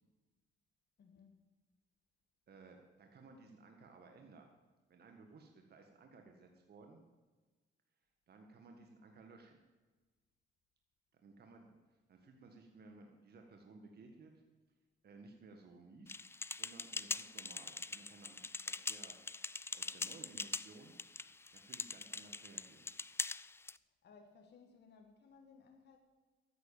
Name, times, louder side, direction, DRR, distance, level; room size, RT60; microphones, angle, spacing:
voice 1, 1.0-1.4 24.0-26.0, left 5 dB, 60° left, 3 dB, 1.7 m, -61 dB
voice 2, 2.5-4.5 4.9-7.0 8.3-9.6 11.1-14.4 15.0-16.2 16.5-19.4 19.7-20.9 21.5-22.9, right 3 dB, 55° right, 3 dB, 1.8 m, -58 dB
sound 1, 16.1-23.8, left 3 dB, 10° left, 0.3 m, -43 dB
13.5 x 9.4 x 7.3 m, 1.3 s
cardioid pair, 90°, 20 cm